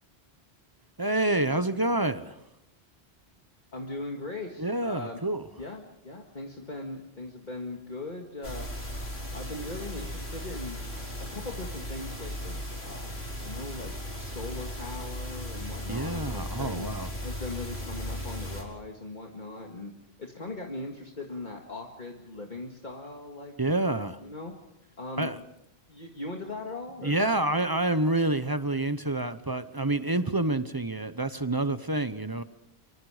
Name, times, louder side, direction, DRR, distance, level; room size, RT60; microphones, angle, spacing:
voice 1, 1.0-2.4 4.6-5.5 15.9-17.1 23.6-24.2 25.2-25.4 27.0-32.4, right 2 dB, 20° right, 0.9 m, -28 dB
voice 2, 3.7-5.2 5.6-8.7 9.3-10.8 11.2-16.9 17.2-19.9 20.2-23.5 24.2-24.5 25.0-25.3 25.9-27.1, left 2 dB, 45° left, 2.1 m, -39 dB
sound 1, 8.4-18.6, equal, 70° left, 4.8 m, -37 dB
26.0 x 25.0 x 5.0 m
omnidirectional pair, 1.1 m